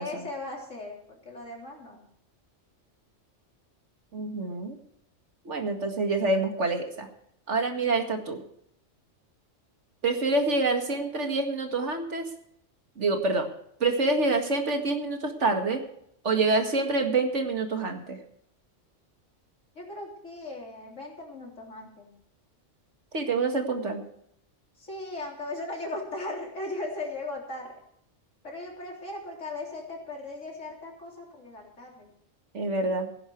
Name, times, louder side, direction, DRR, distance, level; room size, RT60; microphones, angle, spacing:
voice 1, 0.0-2.0 8.0-8.2 19.8-22.1 24.8-27.7 28.4-32.1, left 2 dB, 90° left, 0 dB, 3.8 m, -38 dB
voice 2, 4.1-4.8 5.5-7.1 7.5-8.4 10.0-12.3 13.0-13.5 13.8-15.8 16.2-18.2 23.1-24.0 32.5-33.1, right 3 dB, 75° right, 5 dB, 2.3 m, -27 dB
17.0 x 10.0 x 4.6 m, 0.69 s
omnidirectional pair, 1.2 m